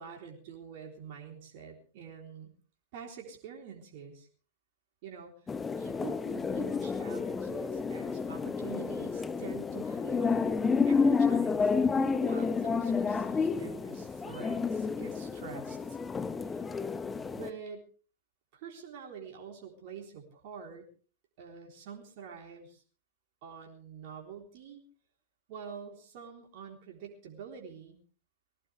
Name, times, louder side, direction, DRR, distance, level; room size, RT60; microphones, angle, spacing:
voice 1, 0.0-2.5 2.9-4.3 5.0-10.5 10.9-11.7 12.2-16.0 16.4-16.7 17.3-17.9 18.5-20.9 21.4-22.8 23.4-24.8 25.5-28.0, right 7 dB, 50° right, 1 dB, 3.7 m, -46 dB
sound 1, 5.5-17.5, left 5 dB, 15° left, 1.1 m, -30 dB
20.5 x 17.5 x 3.4 m, 0.41 s
figure-of-eight pair, 90°, 0 cm